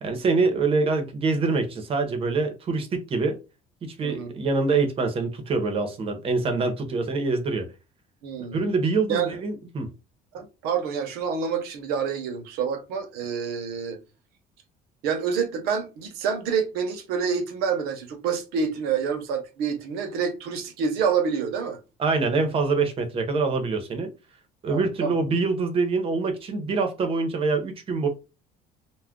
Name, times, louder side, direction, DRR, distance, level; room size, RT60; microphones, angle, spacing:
voice 1, 0.0-3.4 3.8-7.7 8.5-9.9 22.0-24.1 24.6-28.1, right 4 dB, 35° right, 0.7 m, -25 dB
voice 2, 4.0-4.3 8.2-8.7 9.1-9.4 10.3-14.0 15.0-21.8 24.7-25.1, right 6 dB, 85° right, 0.7 m, -27 dB
2.3 x 2.1 x 3.5 m
cardioid pair, 135°, 16 cm